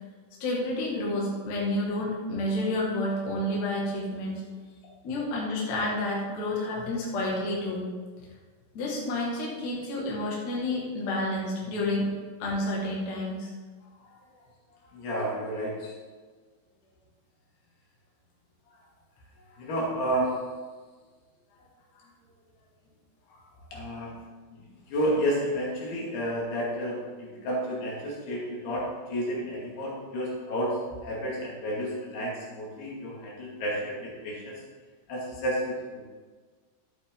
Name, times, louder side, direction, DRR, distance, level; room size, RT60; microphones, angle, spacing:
voice 1, 0.4-4.5 5.0-7.8 8.7-12.1 12.4-13.5 14.0-14.2, left 1 dB, 50° left, -4 dB, 2.7 m, -30 dB
voice 2, 14.9-15.9 19.6-20.4 23.7-24.1 24.5-30.8 31.0-34.6 35.1-36.0, equal, 65° left, -4 dB, 4.2 m, -31 dB
12.0 x 8.5 x 3.8 m, 1.4 s
omnidirectional pair, 5.0 m